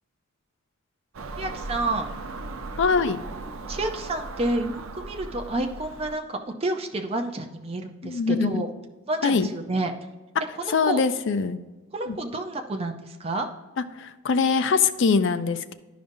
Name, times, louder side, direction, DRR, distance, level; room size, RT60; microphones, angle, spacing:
Car passing by / Engine, 1.1-6.1, right 3 dB, 70° right, 0.6 m, -37 dB
voice 1, 1.4-2.1 3.7-8.7 9.1-9.9 10.6-11.0 11.9-13.5, right 2 dB, 30° right, 4 dB, 0.5 m, -29 dB
voice 2, 2.8-3.2 8.0-8.6 9.2-9.5 10.7-11.6 12.1-12.2 14.0-15.7, left 5 dB, 60° left, 12 dB, 0.4 m, -23 dB
11.0 x 5.1 x 2.6 m, 1.2 s
head